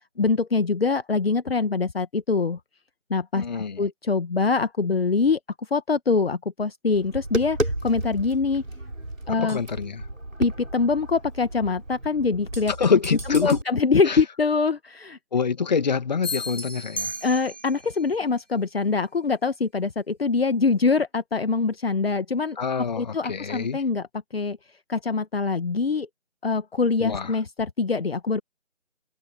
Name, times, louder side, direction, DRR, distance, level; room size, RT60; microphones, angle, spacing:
voice 1, 0.2-2.6 3.1-5.4 5.7-8.6 9.3-9.6 10.4-13.0 13.3-15.2 17.2-24.1 24.3-24.6 24.9-26.1 26.4-28.4, left 4 dB, 50° left, 1.5 m, -24 dB
voice 2, 3.3-3.8 9.4-10.0 12.8-13.6 14.1-14.2 15.3-17.2 22.6-23.8 27.0-27.3, left 6 dB, 35° left, 2.1 m, -25 dB
Tap, 6.9-13.6, right 1 dB, 85° right, 6.4 m, -33 dB
sound 1, 16.2-17.9, left 1 dB, 80° left, 3.8 m, -33 dB
figure-of-eight pair, 160°, 38 cm